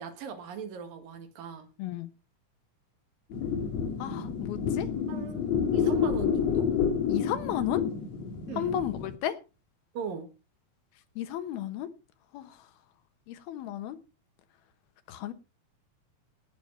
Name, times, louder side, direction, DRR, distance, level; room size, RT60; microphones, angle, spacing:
voice 1, 0.0-1.7 5.1-6.7 8.5-8.8 9.9-10.3, right 6 dB, 70° right, 7 dB, 3.4 m, -39 dB
voice 2, 1.8-2.1 4.0-4.9 7.1-7.8 8.6-9.4 11.2-11.9 12.3-12.6 13.3-14.0 15.1-15.3, left 11 dB, 85° left, 11 dB, 3.1 m, -33 dB
sound 1, 3.3-9.2, left 7 dB, 55° left, 2.3 m, -29 dB
18.5 x 7.2 x 4.6 m, 0.30 s
omnidirectional pair, 4.3 m